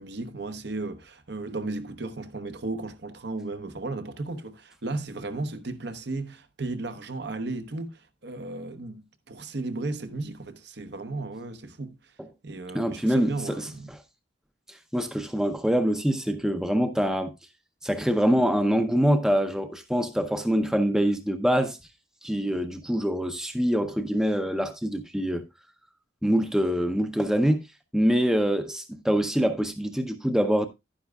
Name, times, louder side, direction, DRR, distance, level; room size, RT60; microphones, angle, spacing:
voice 1, 0.0-12.1 12.4-14.0, right 2 dB, 60° right, 0.9 m, -35 dB
voice 2, 12.7-13.7 14.7-17.3 17.8-21.8 22.2-25.5 26.2-27.6 27.9-30.7, equal, 5° right, 0.6 m, -25 dB
11.5 x 10.0 x 2.3 m
head